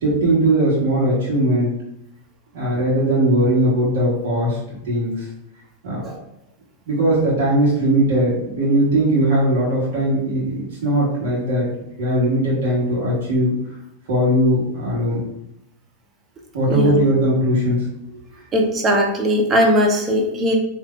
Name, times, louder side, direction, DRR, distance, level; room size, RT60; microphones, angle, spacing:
voice 1, 0.0-1.7 2.5-4.6 4.8-5.3 5.8-6.0 6.9-11.7 12.0-13.5 14.1-15.2 16.5-17.9 18.1-18.2, right 1 dB, 65° right, -6 dB, 1.2 m, -19 dB
voice 2, 16.7-17.1 18.5-20.5, equal, 30° right, 1 dB, 0.7 m, -19 dB
3.4 x 2.6 x 2.4 m, 0.84 s
hypercardioid pair, 100°, 0 cm